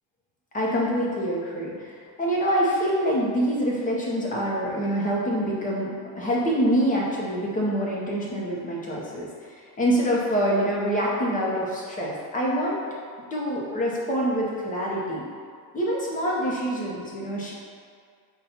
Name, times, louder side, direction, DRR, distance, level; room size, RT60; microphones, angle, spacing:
voice 1, 0.5-5.9 6.1-9.3 9.8-12.8 13.3-15.2 15.7-17.5, equal, 20° left, -4 dB, 0.6 m, -25 dB
5.4 x 2.3 x 4.2 m, 2.1 s
cardioid pair, 180°, 42 cm